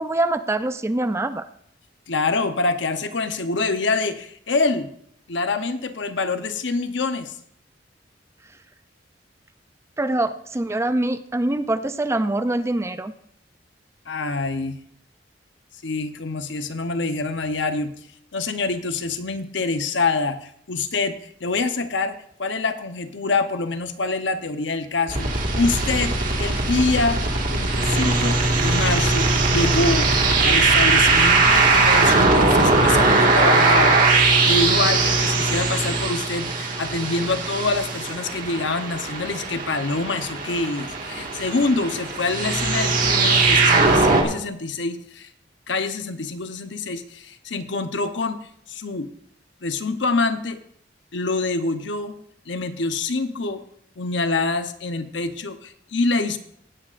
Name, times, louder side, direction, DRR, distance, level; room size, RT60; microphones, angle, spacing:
voice 1, 0.0-1.5 10.0-13.1, right 2 dB, 15° right, 11 dB, 0.4 m, -24 dB
voice 2, 2.1-4.9 5.3-7.3 14.1-14.8 15.8-17.9 18.3-21.2 21.4-30.1 30.4-45.3 45.7-48.4 48.7-49.1 49.6-50.6 51.1-52.1 52.5-53.6 54.0-56.4, left 3 dB, 75° left, 8 dB, 0.9 m, -25 dB
sound 1, 25.1-44.2, right 3 dB, 45° right, 1.8 m, -20 dB
16.5 x 10.0 x 2.5 m, 0.67 s
head